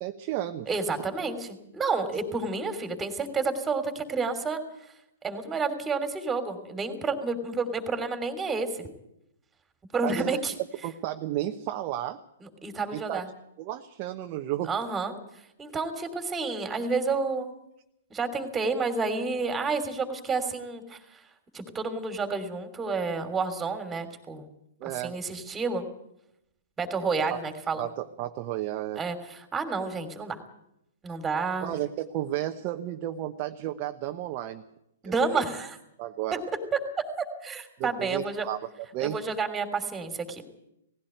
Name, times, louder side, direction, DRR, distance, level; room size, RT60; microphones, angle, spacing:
voice 1, 0.0-0.7 10.0-10.4 10.8-12.2 12.9-13.2 13.6-14.7 24.8-25.1 27.3-27.4 27.8-29.0 31.6-34.6 35.0-35.5 36.0-36.4 37.8-38.6 38.9-39.2, right 13 dB, 40° right, 5 dB, 1.1 m, -32 dB
voice 2, 0.7-4.6 5.2-8.9 9.9-10.5 12.4-13.3 14.7-15.1 15.6-17.5 18.1-21.0 21.5-24.5 25.0-25.8 26.8-27.8 29.0-30.4 31.0-31.7 35.0-35.7 37.4-38.5 39.0-40.4, right 4 dB, 15° right, 8 dB, 3.1 m, -30 dB
18.5 x 16.0 x 9.2 m, 0.82 s
hypercardioid pair, 120°, 0 cm